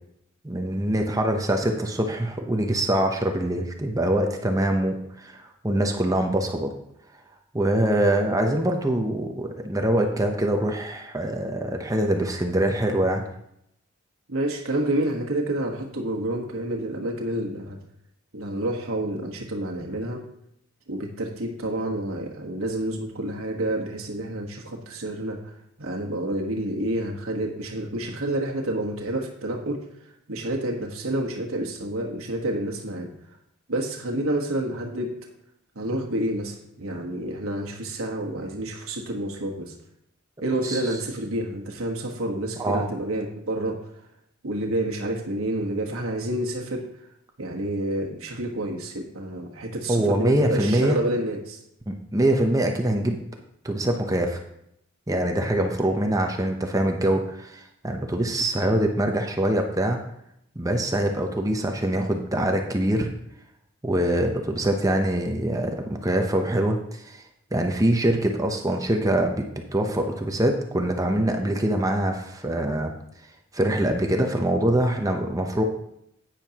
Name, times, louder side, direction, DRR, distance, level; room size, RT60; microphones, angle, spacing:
voice 1, 0.4-6.7 7.5-13.2 40.6-40.9 42.6-42.9 49.9-51.0 51.9-53.2 53.6-54.4 55.1-60.0 60.6-63.1 63.8-67.2 67.5-69.5 69.7-72.9 73.5-75.6, right 1 dB, 15° right, 3 dB, 0.7 m, -24 dB
voice 2, 14.3-17.8 18.3-20.2 20.9-25.4 25.8-29.8 30.3-33.1 33.7-35.2 35.7-39.7 40.4-43.8 44.4-46.8 47.4-51.6, right 1 dB, 75° right, 1 dB, 1.3 m, -29 dB
10.5 x 9.1 x 2.9 m, 0.76 s
head